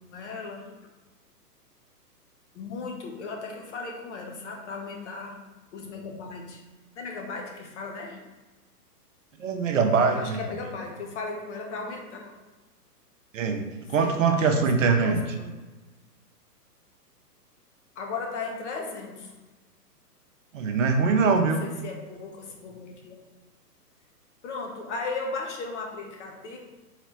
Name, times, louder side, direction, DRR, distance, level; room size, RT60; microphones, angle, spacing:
voice 1, 0.1-0.8 2.5-5.4 5.7-6.6 6.9-8.2 10.1-12.3 14.0-15.6 17.9-19.4 21.3-23.2 24.4-26.6, left 4 dB, 45° left, 1 dB, 1.0 m, -36 dB
voice 2, 9.4-10.4 13.3-15.2 20.5-21.7, right 5 dB, 50° right, 5 dB, 0.7 m, -23 dB
4.1 x 4.0 x 3.1 m, 1.2 s
figure-of-eight pair, 125°, 49 cm